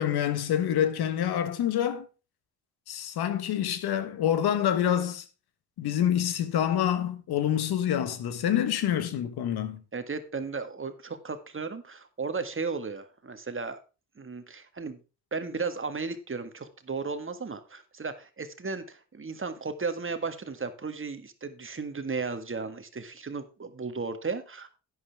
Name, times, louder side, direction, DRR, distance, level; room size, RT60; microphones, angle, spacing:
voice 1, 0.0-2.0 2.9-5.2 5.8-9.8, left 10 dB, 80° left, 1.4 m, -27 dB
voice 2, 9.9-13.8 14.2-15.0 15.3-24.8, right 4 dB, 35° right, 1.7 m, -35 dB
11.0 x 9.7 x 3.5 m
supercardioid pair, 60°, 38 cm